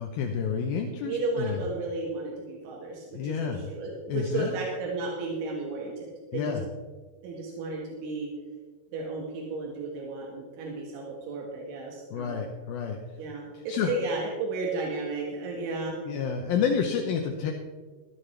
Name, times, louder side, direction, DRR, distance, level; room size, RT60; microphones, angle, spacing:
voice 1, 0.0-1.6 3.1-3.6 4.1-4.6 6.3-6.7 12.1-13.0 13.5-13.9 16.1-17.5, left 6 dB, 75° left, 2 dB, 2.2 m, -29 dB
voice 2, 1.0-6.6 7.2-8.3 8.9-12.4 13.2-16.0, right 3 dB, 90° right, -1 dB, 4.1 m, -33 dB
14.0 x 14.0 x 3.4 m, 1.4 s
omnidirectional pair, 5.3 m